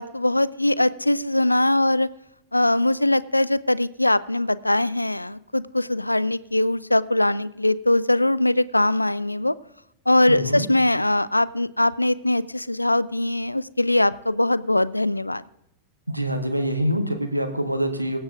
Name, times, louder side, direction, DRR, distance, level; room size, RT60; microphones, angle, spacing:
voice 1, 0.0-2.1 2.5-9.5 10.1-15.4, left 1 dB, 85° left, 19 dB, 0.3 m, -21 dB
voice 2, 10.3-10.6 16.1-18.2, equal, 90° right, 5 dB, 1.2 m, -25 dB
23.5 x 8.0 x 2.5 m, 0.84 s
figure-of-eight pair, 90°, 0 cm